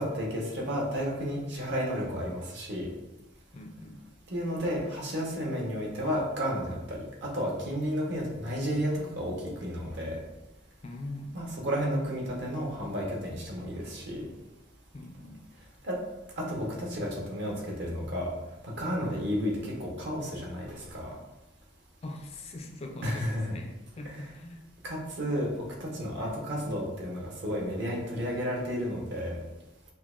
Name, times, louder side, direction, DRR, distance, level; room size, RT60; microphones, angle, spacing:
voice 1, 0.0-2.8 4.3-9.3 9.6-10.2 11.3-14.2 15.8-16.0 16.4-18.3 18.6-21.1 23.0-23.5 24.0-24.3 24.8-25.5 25.8-29.4, equal, 60° right, -2 dB, 0.9 m, -32 dB
voice 2, 3.5-4.0 10.8-11.4 14.9-15.4 22.0-23.7 24.0-24.6 26.2-26.4, left 1 dB, 30° left, 3 dB, 0.3 m, -42 dB
5.4 x 2.1 x 2.4 m, 1.0 s
head